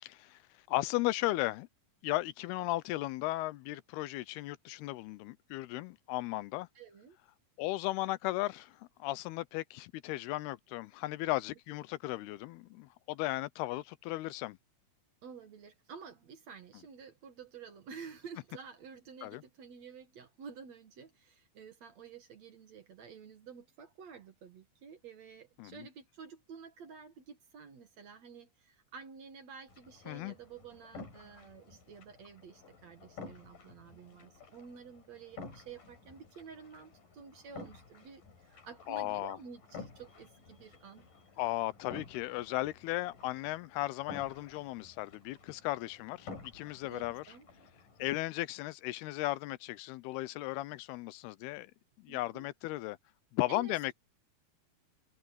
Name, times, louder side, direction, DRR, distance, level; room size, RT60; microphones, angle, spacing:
voice 1, 0.7-1.7 2.0-6.7 7.6-14.6 19.2-19.4 25.6-25.9 30.1-30.3 38.9-39.4 41.4-47.2 48.0-51.7 52.0-53.0 53.3-53.9, left 18 dB, 90° left, 2.7 m, -36 dB
voice 2, 6.8-7.2 15.2-41.1 46.8-47.5 52.1-52.4 53.5-53.9, right 6 dB, 55° right, 2.5 m, -51 dB
sound 1, 29.7-48.2, left 4 dB, 60° left, 6.4 m, -52 dB
omnidirectional pair, 4.4 m